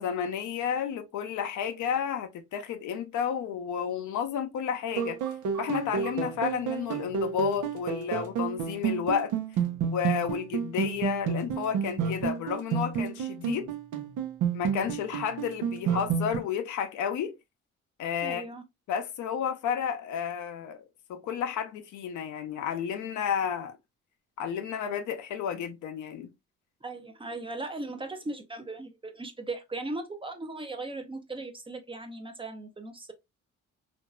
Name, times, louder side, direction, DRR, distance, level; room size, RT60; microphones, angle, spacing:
voice 1, 0.0-5.2 5.6-9.3 9.9-13.7 14.5-17.4 18.0-18.5 18.9-20.8 21.1-23.8 24.4-26.3, left 8 dB, 75° left, 0.6 m, -31 dB
sound 1, 4.9-16.4, right 7 dB, 80° right, 0.8 m, -30 dB
voice 2, 18.2-18.6 26.8-33.1, right 2 dB, 15° right, 0.5 m, -38 dB
3.0 x 2.5 x 2.3 m
cardioid pair, 90°, 30 cm